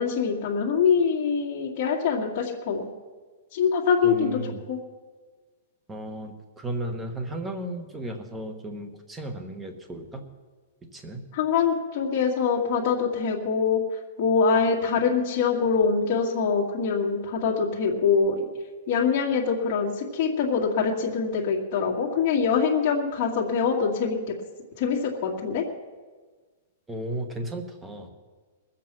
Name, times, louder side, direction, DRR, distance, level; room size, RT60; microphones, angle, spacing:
voice 1, 0.0-2.9 3.5-4.8 11.3-13.8 14.2-18.4 18.9-24.2 24.8-25.6, left 6 dB, 30° left, -4 dB, 1.9 m, -24 dB
voice 2, 4.0-4.6 5.9-10.2 10.9-11.2 26.9-28.1, right 1 dB, 10° right, 6 dB, 1.1 m, -34 dB
20.5 x 7.6 x 6.1 m, 1.4 s
hypercardioid pair, 170°, 0 cm